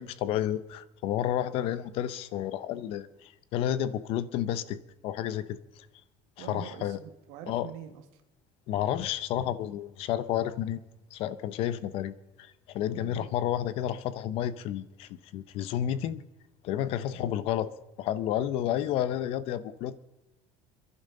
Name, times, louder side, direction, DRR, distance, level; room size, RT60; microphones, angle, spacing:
voice 1, 0.0-5.9 6.4-7.0 7.5-7.7 8.7-10.8 11.1-16.2 16.6-17.7 18.0-20.0, left 11 dB, 50° left, 16 dB, 0.8 m, -31 dB
voice 2, 6.4-8.2 12.9-13.3 17.1-17.4, right 11 dB, 70° right, 7 dB, 1.6 m, -45 dB
29.0 x 11.0 x 3.9 m, 1.0 s
cardioid pair, 175°, 12 cm